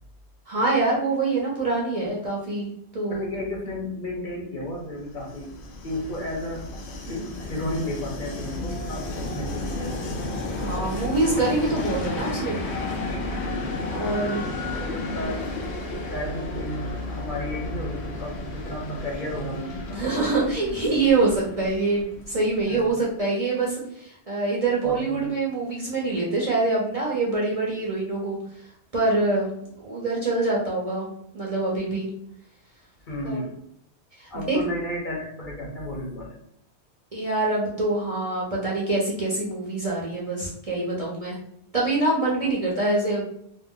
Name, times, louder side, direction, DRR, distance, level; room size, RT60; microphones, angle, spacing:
voice 1, 0.5-3.2 7.1-7.2 10.6-12.6 13.9-14.4 19.9-28.4 28.9-29.5 29.8-31.1 31.3-32.1 33.2-33.4 34.2-34.7 37.1-41.4 41.7-43.2, right 3 dB, 40° right, -5 dB, 0.6 m, -25 dB
voice 2, 3.1-5.5 5.8-6.7 7.0-10.2 13.5-13.7 14.6-15.4 16.0-20.0 22.7-22.9 24.8-25.2 33.0-33.5 34.3-36.4, left 1 dB, 55° left, -1 dB, 0.8 m, -33 dB
Train, 5.0-22.7, left 2 dB, 80° left, 0.8 m, -32 dB
2.6 x 2.1 x 3.6 m, 0.73 s
omnidirectional pair, 1.1 m